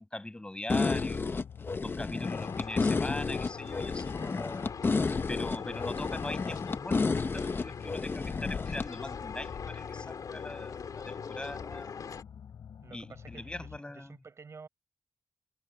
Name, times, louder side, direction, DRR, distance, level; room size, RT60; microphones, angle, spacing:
voice 1, 0.0-1.4 1.8-12.0 12.9-14.1, left 1 dB, 15° left, 6.4 m, -41 dB
sound 1, 0.7-13.8, left 7 dB, 75° left, 4.9 m, -48 dB
sound 2, 0.7-8.9, left 4 dB, 30° left, 0.8 m, -31 dB
sound 3, 2.2-12.2, left 6 dB, 60° left, 2.8 m, -41 dB
voice 2, 4.2-4.8 12.8-14.7, right 5 dB, 40° right, 5.5 m, -52 dB
wide cardioid pair, 125°, 7 cm